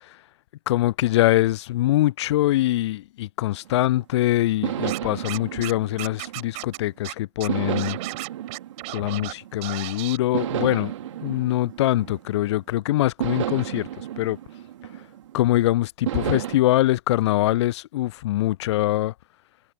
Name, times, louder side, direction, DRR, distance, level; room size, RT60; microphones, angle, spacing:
voice 1, 0.7-8.0 8.9-10.9 11.2-13.9 14.2-14.4 15.3-19.1, left 15 dB, 50° left, 0.5 m, -23 dB
sound 1, 3.7-4.0 4.6-6.9 7.5-9.7 10.3-12.6 13.2-15.5 16.1-16.6, right 12 dB, 60° right, 3.2 m, -32 dB
Scratching (performance technique), 4.9-5.7 6.0-6.8 7.0-7.1 7.4-9.3 9.6-10.2, right 24 dB, 40° right, 4.9 m, -34 dB
figure-of-eight pair, 100°, 18 cm